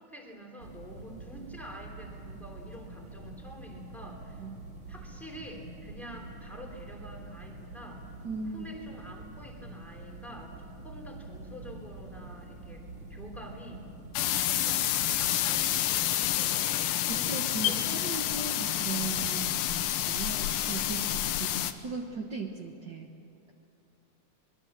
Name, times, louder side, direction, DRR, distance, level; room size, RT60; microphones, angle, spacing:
voice 1, 0.0-4.4 4.9-8.1 8.5-12.8 13.1-13.9 14.5-17.3 17.6-17.9 20.1-20.3, equal, ahead, 0 dB, 3.0 m, -47 dB
sound 1, 0.6-15.5, right 2 dB, 30° right, 2.1 m, -46 dB
voice 2, 8.2-8.7 17.1-20.4 20.6-23.1, right 5 dB, 65° right, 2 dB, 1.0 m, -38 dB
sound 2, 14.2-21.7, left 12 dB, 85° left, 2.6 m, -29 dB
25.0 x 21.5 x 7.4 m, 2.7 s
omnidirectional pair, 3.9 m